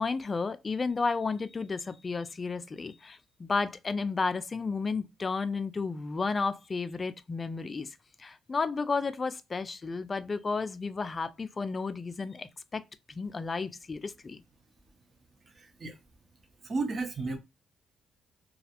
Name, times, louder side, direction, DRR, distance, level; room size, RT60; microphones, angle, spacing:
voice 1, 0.0-7.9 8.2-14.4, left 4 dB, 30° left, 0.3 m, -32 dB
voice 2, 15.5-16.0 16.6-17.4, right 3 dB, 40° right, 0.7 m, -33 dB
2.3 x 2.0 x 2.8 m
cardioid pair, 90°, 0 cm